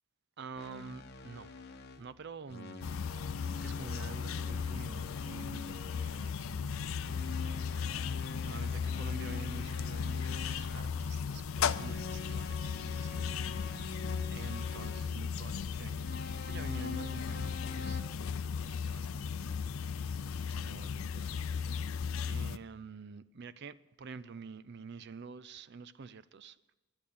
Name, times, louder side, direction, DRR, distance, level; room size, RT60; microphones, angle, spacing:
voice 1, 0.4-1.5 2.0-8.1 8.4-13.9 14.3-18.1 18.6-20.0 20.5-21.9 22.3-26.6, right 5 dB, 55° right, 0.5 m, -49 dB
sound 1, 0.6-2.1 2.5-6.3 7.0-11.0 11.5-15.1 16.0-18.0, left 4 dB, 50° left, 1.1 m, -46 dB
sound 2, 2.8-22.6, left 6 dB, 85° left, 0.5 m, -36 dB
12.0 x 10.5 x 6.9 m
head